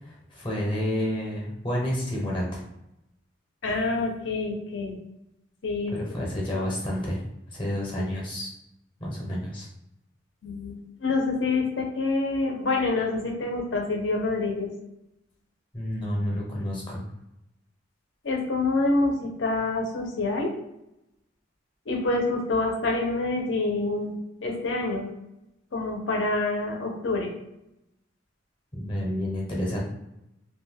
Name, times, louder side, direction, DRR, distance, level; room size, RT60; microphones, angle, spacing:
voice 1, 0.0-2.6 5.9-7.2 7.5-8.5 9.0-9.7 15.7-17.0 28.7-29.8, equal, 25° left, -4 dB, 0.7 m, -30 dB
voice 2, 3.6-4.9 5.6-5.9 10.4-14.7 18.2-20.5 21.9-24.2 24.4-25.1 25.7-27.3, left 3 dB, 70° left, 0 dB, 0.7 m, -27 dB
2.4 x 2.2 x 3.3 m, 0.87 s
head